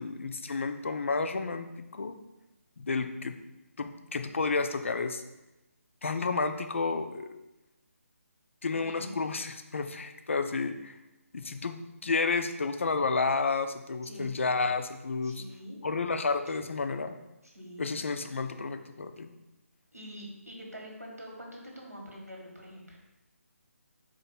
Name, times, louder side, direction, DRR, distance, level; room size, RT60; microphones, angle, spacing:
voice 1, 0.0-2.2 2.8-3.4 3.8-5.2 6.0-7.4 8.6-10.9 11.3-15.4 15.8-17.2 17.8-19.3, left 4 dB, 55° left, 8 dB, 0.3 m, -31 dB
voice 2, 8.7-9.2 14.0-14.3 15.2-15.8 17.4-17.9 19.9-23.0, equal, 90° right, -2 dB, 1.3 m, -45 dB
4.0 x 2.5 x 4.2 m, 0.96 s
figure-of-eight pair, 150°, 8 cm